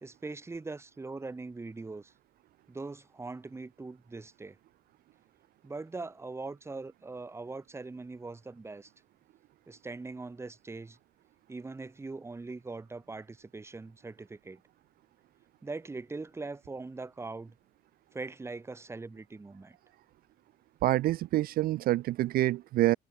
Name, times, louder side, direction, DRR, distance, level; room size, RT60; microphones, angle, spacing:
voice 1, 0.0-2.1 2.7-4.6 5.6-8.9 9.7-11.0 11.5-14.6 15.6-17.5 18.1-19.8, right 3 dB, 15° right, 1.2 m, -41 dB
voice 2, 20.8-23.0, right 16 dB, 65° right, 0.4 m, -26 dB
cardioid pair, 110°, 17 cm